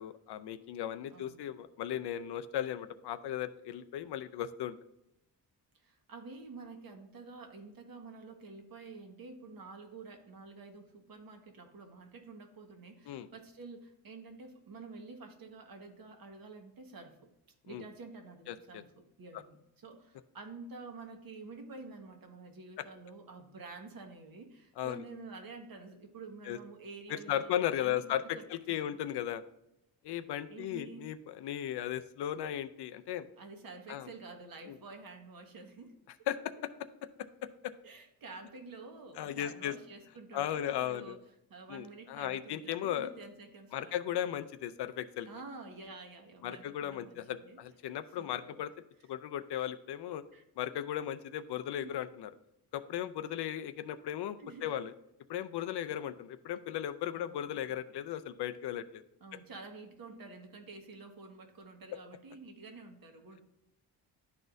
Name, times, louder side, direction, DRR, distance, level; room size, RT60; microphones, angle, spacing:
voice 1, 0.0-4.7 13.1-13.3 17.7-17.8 18.5-18.8 24.8-25.0 26.5-26.6 27.1-29.4 30.0-33.3 33.9-34.1 34.6-34.8 36.3-36.4 36.6-36.7 39.2-39.7 40.3-41.2 41.7-43.1 43.7-45.3 46.4-48.7 49.1-50.2 50.6-52.3 52.7-54.9 55.3-59.0, left 11 dB, 75° left, 11 dB, 0.5 m, -36 dB
voice 2, 1.1-1.5 5.7-17.3 17.6-19.6 19.8-27.5 27.8-29.0 30.5-31.1 33.4-35.9 37.8-41.2 41.5-44.0 44.2-44.4 45.3-47.6 48.2-48.6 50.3-50.4 51.8-51.9 54.4-54.9 57.1-57.6 59.2-63.4, right 3 dB, 60° right, 4 dB, 1.3 m, -49 dB
10.5 x 4.2 x 2.6 m, 0.86 s
cardioid pair, 85°, 40 cm